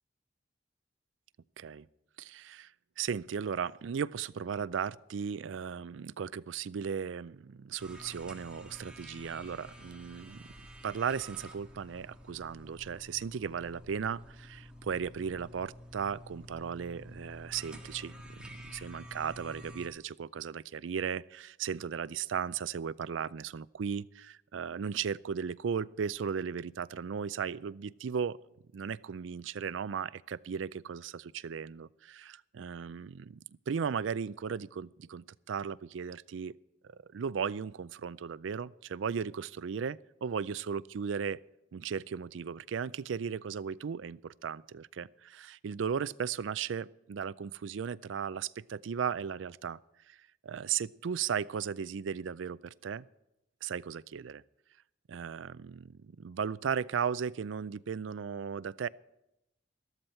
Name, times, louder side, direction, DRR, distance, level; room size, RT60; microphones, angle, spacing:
voice 1, 2.2-2.7 3.0-10.5 10.8-28.4 28.7-33.4 33.7-36.6 36.8-41.4 41.7-49.8 50.1-50.2 50.4-53.1 53.6-54.4 55.1-58.9, right 7 dB, 90° right, 20 dB, 0.4 m, -36 dB
sound 1, 7.8-19.9, equal, 5° right, 1.7 m, -50 dB
13.5 x 13.5 x 4.4 m, 0.87 s
head